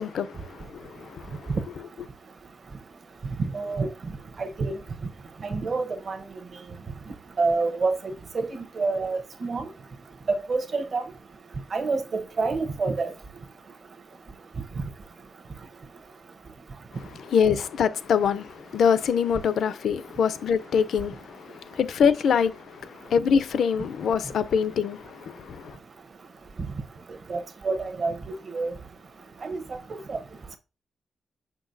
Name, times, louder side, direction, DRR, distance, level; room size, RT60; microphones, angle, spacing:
voice 1, 0.0-1.5 16.9-25.8, left 7 dB, 80° left, 0.5 m, -25 dB
voice 2, 3.4-3.9 4.4-4.8 5.4-6.2 7.4-8.0 8.3-8.5 8.8-9.6 10.3-11.0 11.7-13.1 27.3-28.1 28.5-28.7 29.4-29.6 29.9-30.2, right 3 dB, 45° right, 0.9 m, -27 dB
6.3 x 6.0 x 2.6 m
wide cardioid pair, 135°, 0 cm